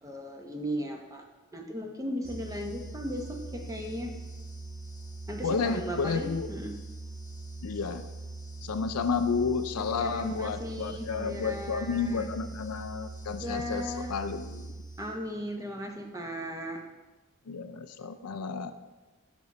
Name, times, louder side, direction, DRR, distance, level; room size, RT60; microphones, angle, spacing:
voice 1, 0.0-1.2 1.5-4.1 5.3-6.7 10.0-12.3 13.4-14.1 15.0-16.8, equal, 15° right, 3 dB, 0.8 m, -36 dB
sound 1, 2.2-15.4, right 2 dB, 60° right, 2.3 m, -42 dB
voice 2, 5.4-6.5 7.6-8.1 8.6-14.8 17.5-18.7, left 5 dB, 90° left, 10 dB, 0.5 m, -31 dB
6.8 x 6.1 x 4.1 m, 1.2 s
head